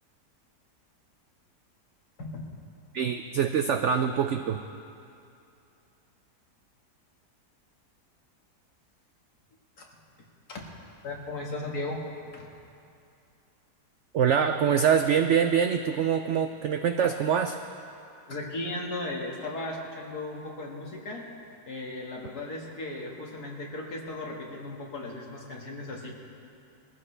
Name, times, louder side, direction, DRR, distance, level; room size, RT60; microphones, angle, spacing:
voice 1, 2.9-4.6 14.1-17.6, right 7 dB, 80° right, 7 dB, 0.6 m, -24 dB
voice 2, 11.0-12.0 12.3-12.5 18.3-21.2 21.7-26.2, left 2 dB, 65° left, -1 dB, 2.2 m, -36 dB
21.5 x 14.5 x 3.3 m, 2.6 s
omnidirectional pair, 1.8 m